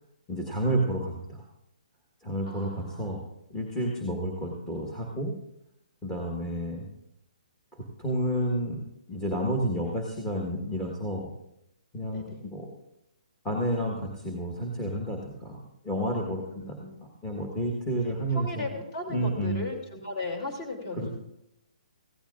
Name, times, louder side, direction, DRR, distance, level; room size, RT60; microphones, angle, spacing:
voice 1, 0.3-1.4 2.2-3.2 3.5-5.3 6.0-6.9 7.7-8.8 9.1-11.3 11.9-12.7 13.4-18.7 19.1-19.6 21.0-21.1, right 1 dB, 10° left, 0 dB, 1.5 m, -30 dB
voice 2, 2.5-3.1 12.1-12.4 16.6-16.9 18.0-21.1, left 2 dB, 35° left, 2 dB, 3.0 m, -37 dB
16.0 x 15.5 x 2.5 m, 0.82 s
hypercardioid pair, 150°, 4 cm